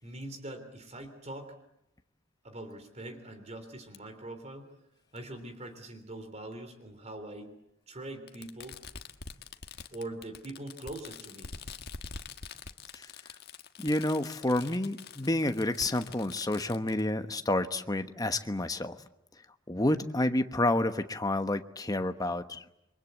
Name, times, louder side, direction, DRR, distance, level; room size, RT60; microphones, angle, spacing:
voice 1, 0.0-1.5 2.4-4.7 5.1-7.5 7.9-8.8 9.9-11.5, right 1 dB, 35° right, 7 dB, 3.4 m, -43 dB
Fireworks, 3.9-4.0 5.2-5.3 6.5-6.6 8.3-17.0, left 5 dB, 55° left, 1.5 m, -46 dB
voice 2, 13.8-19.0 19.7-22.6, left 1 dB, 20° left, 9 dB, 1.1 m, -29 dB
29.0 x 23.0 x 8.2 m, 0.84 s
head